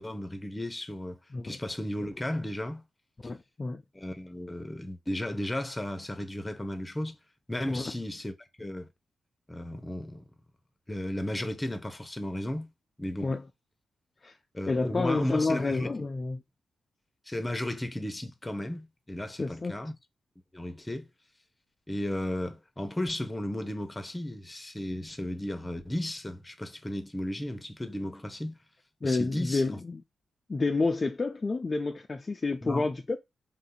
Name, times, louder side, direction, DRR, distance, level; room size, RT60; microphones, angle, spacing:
voice 1, 0.0-1.2 1.4-2.8 3.9-7.2 7.5-8.9 9.5-10.2 10.9-12.7 13.0-13.3 14.5-16.0 17.3-19.9 20.5-21.1 21.9-28.6 29.0-29.6 32.6-32.9, left 1 dB, 15° left, 0.9 m, -34 dB
voice 2, 3.2-3.8 7.7-7.9 13.2-13.4 14.2-14.4 14.7-16.4 19.4-19.7 29.0-30.0 30.5-33.2, left 3 dB, 35° left, 0.5 m, -29 dB
4.0 x 2.7 x 3.9 m
cardioid pair, 70°, 0 cm